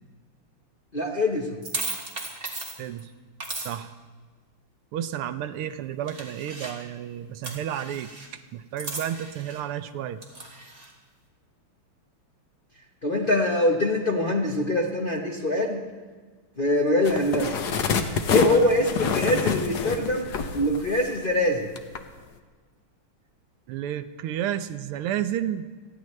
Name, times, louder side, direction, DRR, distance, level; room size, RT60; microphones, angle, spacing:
voice 1, 0.9-1.6 13.0-15.8 16.6-17.6 18.3-21.7, left 1 dB, 35° left, -2 dB, 0.8 m, -24 dB
sound 1, 1.6-3.0 3.4-3.7 6.1-6.8 7.4-8.3 8.8-9.6 10.2-10.9, right 2 dB, 25° right, 2.0 m, -36 dB
voice 2, 2.8-3.1 3.6-3.9 4.9-8.1 8.5-10.2 23.7-25.7, right 10 dB, 80° right, 11 dB, 1.6 m, -31 dB
sound 2, 17.0-21.4 21.8-22.0, left 5 dB, 60° left, 1.2 m, -27 dB
29.5 x 10.5 x 3.2 m, 1.4 s
omnidirectional pair, 2.4 m